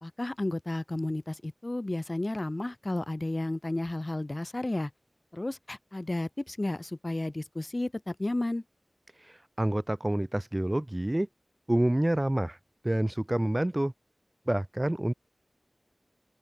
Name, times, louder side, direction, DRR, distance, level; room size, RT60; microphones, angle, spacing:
voice 1, 0.0-4.9 5.3-8.6, left 2 dB, 40° left, 2.5 m, -32 dB
voice 2, 9.1-11.3 11.7-12.6 12.8-13.9 14.5-15.1, right 1 dB, 25° right, 3.6 m, -28 dB
open air
wide cardioid pair, 50°, 0 cm